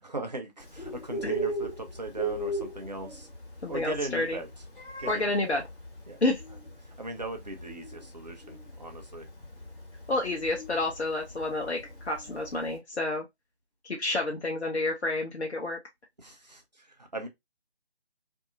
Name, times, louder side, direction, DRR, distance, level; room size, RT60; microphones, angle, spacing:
voice 1, 0.0-3.3 3.7-4.5 5.0-5.5 6.1-6.2 7.0-9.2 16.2-17.3, right 2 dB, 40° right, 0.6 m, -39 dB
Bird, 0.6-12.7, right 2 dB, 50° left, 1.5 m, -38 dB
voice 2, 3.6-4.4 5.1-5.6 6.2-6.4 10.1-11.8 12.0-13.2 13.8-15.8, left 2 dB, 75° left, 0.8 m, -29 dB
2.6 x 2.6 x 2.4 m
figure-of-eight pair, 160°, 33 cm